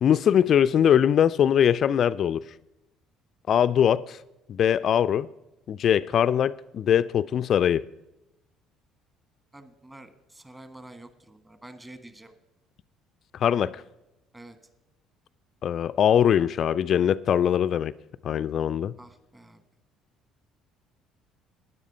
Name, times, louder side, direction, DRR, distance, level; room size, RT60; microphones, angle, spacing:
voice 1, 0.0-2.4 3.5-4.2 4.5-5.3 5.7-7.8 13.3-13.8 15.6-17.9 18.2-18.9, left 9 dB, 50° left, 0.3 m, -22 dB
voice 2, 9.5-12.3 14.3-14.6 19.0-19.6, right 1 dB, 15° right, 1.6 m, -47 dB
12.0 x 9.8 x 5.5 m
hypercardioid pair, 55°, 0 cm